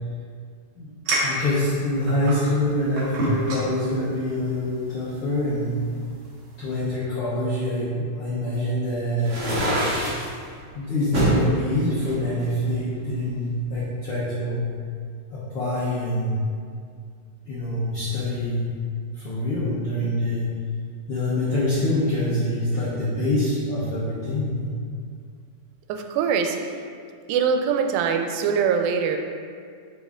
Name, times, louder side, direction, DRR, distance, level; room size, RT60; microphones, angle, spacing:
sound 1, 1.0-6.9, right 1 dB, 70° right, 1.3 m, -32 dB
voice 1, 1.2-5.8 6.6-9.3 10.7-14.7 15.3-16.4 17.4-18.7 19.1-20.5 21.1-24.7, left 1 dB, 80° left, -9 dB, 1.2 m, -25 dB
sound 2, 9.2-10.3 11.1-11.4 12.0-13.1, right 1 dB, 40° right, 1.6 m, -24 dB
voice 2, 25.9-26.6 27.3-29.2, right 6 dB, 90° right, 5 dB, 2.3 m, -23 dB
5.3 x 5.2 x 3.6 m, 2.1 s
omnidirectional pair, 4.0 m